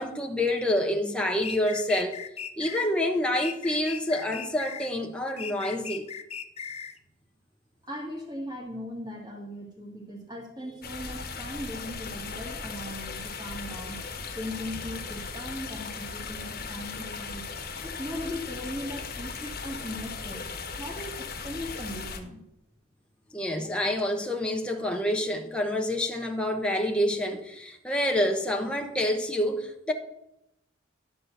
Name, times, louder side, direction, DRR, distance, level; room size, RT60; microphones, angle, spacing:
voice 1, 0.0-2.2 2.6-6.0 23.3-29.9, left 1 dB, 5° left, 0.9 m, -27 dB
sound 1, 1.4-2.9 3.4-4.9 5.4-7.0, left 6 dB, 30° left, 0.5 m, -38 dB
voice 2, 7.8-14.0 14.3-17.5 17.8-20.5 20.8-22.4, left 1 dB, 20° right, 1.9 m, -38 dB
sound 2, 10.8-22.2, left 4 dB, 45° left, 1.2 m, -38 dB
11.5 x 4.3 x 7.9 m
head